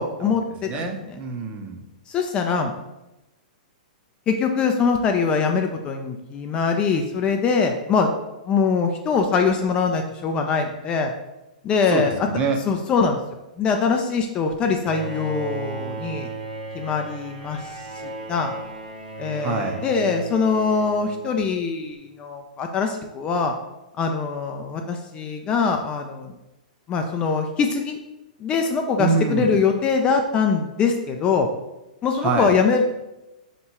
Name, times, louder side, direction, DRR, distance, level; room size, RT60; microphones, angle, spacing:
voice 1, 0.0-0.8 2.1-2.7 4.3-8.1 8.5-11.1 11.6-12.1 12.7-13.2 13.6-16.3 16.7-18.5 19.2-23.5 24.0-26.3 26.9-28.0 28.4-31.5 32.0-32.8, left 5 dB, 20° left, 4 dB, 0.3 m, -23 dB
voice 2, 0.6-1.8 11.9-12.6 19.4-19.8 29.0-29.6 32.2-32.5, right 4 dB, 25° right, 4 dB, 0.6 m, -25 dB
Bowed string instrument, 14.8-21.6, right 2 dB, 85° right, 1.0 m, -35 dB
3.5 x 2.9 x 4.3 m, 0.98 s
hypercardioid pair, 145°, 5 cm